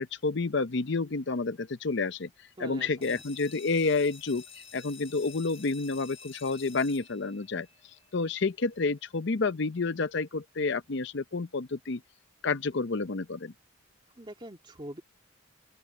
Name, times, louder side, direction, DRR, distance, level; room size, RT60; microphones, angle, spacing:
voice 1, 0.0-2.3 2.6-4.4 4.7-7.7 8.1-12.0 12.4-13.5, left 3 dB, 60° left, 0.7 m, -29 dB
voice 2, 2.6-3.2 14.2-15.0, right 1 dB, 25° right, 2.2 m, -43 dB
sound 1, 3.0-8.4, left 6 dB, 30° left, 2.7 m, -50 dB
open air
head